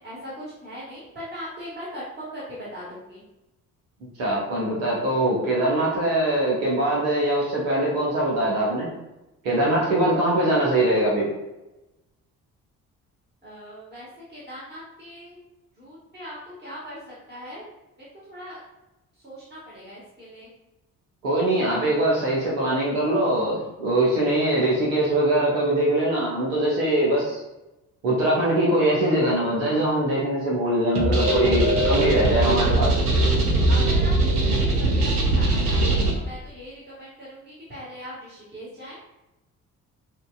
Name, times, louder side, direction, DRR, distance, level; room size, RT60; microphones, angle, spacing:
voice 1, 0.0-3.2 13.4-15.4 15.8-17.7 18.0-18.6 19.2-20.5 33.7-39.0, equal, 20° right, -7 dB, 1.5 m, -40 dB
voice 2, 4.2-8.9 9.4-11.3 21.2-27.4 28.0-33.0, right 1 dB, 70° right, -5 dB, 1.0 m, -22 dB
sound 1, 30.9-36.1, right 2 dB, 85° right, 0.6 m, -20 dB
6.3 x 2.3 x 2.2 m, 0.97 s
figure-of-eight pair, 45°, 45 cm